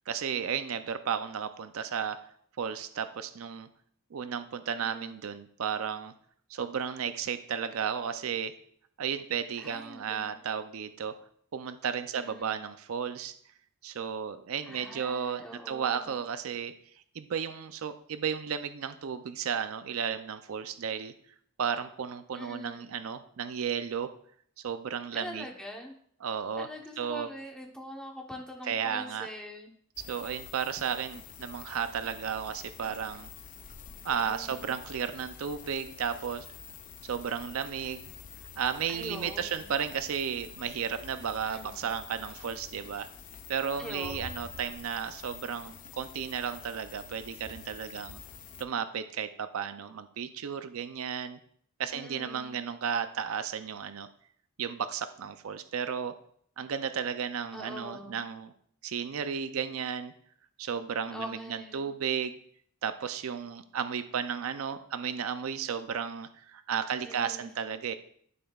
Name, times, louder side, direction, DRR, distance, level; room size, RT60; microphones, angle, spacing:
voice 1, 0.1-2.3 2.6-3.7 4.1-6.1 6.5-8.5 9.0-11.2 11.5-13.3 13.8-16.7 17.1-21.1 21.6-24.1 24.6-25.5 26.2-26.7 27.0-27.3 28.7-29.3 30.1-33.3 34.0-36.5 37.1-38.1 38.6-43.1 43.5-48.2 48.6-51.4 51.8-54.1 54.6-56.1 56.6-58.5 58.8-60.1 60.6-62.4 62.8-67.9, right 7 dB, 65° right, 11 dB, 0.4 m, -34 dB
voice 2, 4.8-5.2 9.6-10.5 12.1-12.6 14.7-16.1 22.3-22.9 25.1-26.0 26.6-29.7 34.1-34.7 38.9-39.7 41.4-41.8 43.8-44.3 51.9-52.6 57.5-58.2 61.1-61.9 67.0-67.5, equal, 5° left, 0 dB, 0.9 m, -44 dB
sound 1, 30.0-48.6, left 7 dB, 40° left, 0.5 m, -47 dB
12.0 x 5.5 x 2.3 m, 0.63 s
head